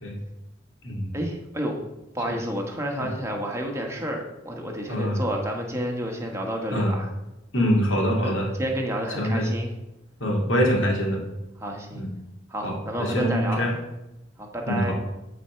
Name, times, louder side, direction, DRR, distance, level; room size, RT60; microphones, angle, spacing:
voice 1, 1.1-1.8 2.1-7.1 8.2-9.7 11.6-12.0 12.5-13.6 14.4-14.9, right 1 dB, 15° right, 1 dB, 1.3 m, -30 dB
voice 2, 4.9-5.2 6.7-6.9 7.5-8.5 9.2-9.5 10.2-11.2 11.9-12.1 12.6-13.7 14.7-14.9, equal, 70° left, -1 dB, 2.3 m, -24 dB
11.0 x 4.3 x 5.8 m, 0.93 s
head